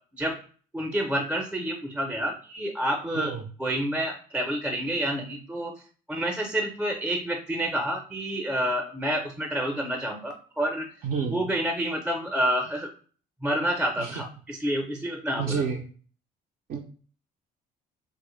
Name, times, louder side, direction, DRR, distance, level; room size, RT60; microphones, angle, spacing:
voice 1, 0.7-3.3 3.6-5.7 6.1-10.9 11.3-12.9 13.4-15.6, equal, 10° right, 2 dB, 0.6 m, -28 dB
voice 2, 3.1-3.4 11.0-11.4 14.0-14.2 15.4-15.8 16.7-16.8, right 6 dB, 55° right, 1 dB, 0.5 m, -29 dB
3.6 x 2.1 x 3.1 m, 0.42 s
cardioid pair, 110°, 17 cm